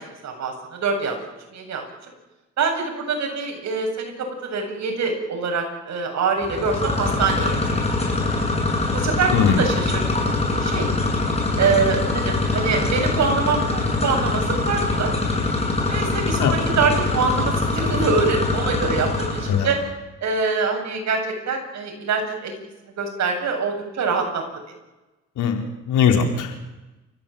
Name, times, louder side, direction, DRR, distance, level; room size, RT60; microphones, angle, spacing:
voice 1, 0.2-1.2 1.5-1.8 2.6-7.6 8.9-10.9 11.6-15.1 15.9-19.8 20.2-21.2 21.5-22.5 23.0-24.4, right 4 dB, 65° right, 3 dB, 8.0 m, -24 dB
sound 1, 6.4-19.8, left 3 dB, 20° left, 8.0 m, -23 dB
voice 2, 25.4-26.5, left 7 dB, 80° left, 4 dB, 4.1 m, -20 dB
29.5 x 15.5 x 8.8 m, 1.1 s
cardioid pair, 90°, 30 cm